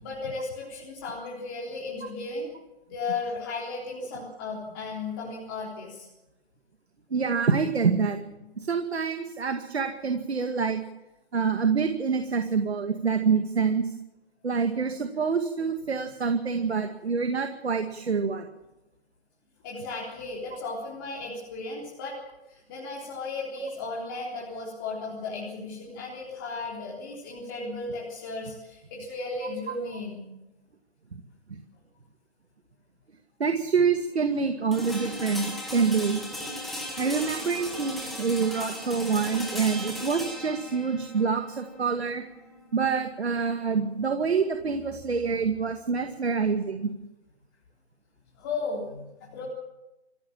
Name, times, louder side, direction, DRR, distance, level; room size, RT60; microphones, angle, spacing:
voice 1, 0.0-2.5 2.9-6.1 16.7-16.9 19.6-22.2 22.5-30.3 48.4-49.4, left 3 dB, 20° left, -5 dB, 3.8 m, -35 dB
voice 2, 7.1-8.2 8.6-10.8 11.3-13.8 14.4-18.5 23.6-23.7 31.5-31.6 33.4-36.2 37.0-42.2 42.7-46.9, right 5 dB, 75° right, 6 dB, 2.2 m, -26 dB
sound 1, 34.7-44.6, left 1 dB, ahead, 1.0 m, -38 dB
27.5 x 15.5 x 7.4 m, 0.99 s
hypercardioid pair, 170°, 33 cm